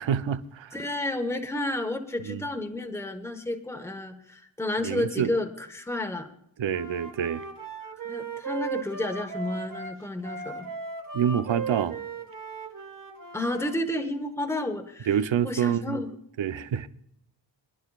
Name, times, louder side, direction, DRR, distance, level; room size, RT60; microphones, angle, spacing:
voice 1, 0.0-0.8 2.2-2.5 4.8-5.3 6.6-7.4 11.1-12.0 15.1-16.0 16.4-16.9, right 9 dB, 80° right, 0.8 m, -27 dB
voice 2, 0.7-6.3 8.0-10.6 13.3-15.1 15.4-16.1, left 1 dB, 5° left, 1.2 m, -31 dB
Wind instrument woodwind instrument, 6.7-13.7, right 5 dB, 45° right, 1.7 m, -37 dB
26.0 x 11.5 x 2.4 m
wide cardioid pair, 170°, 45 cm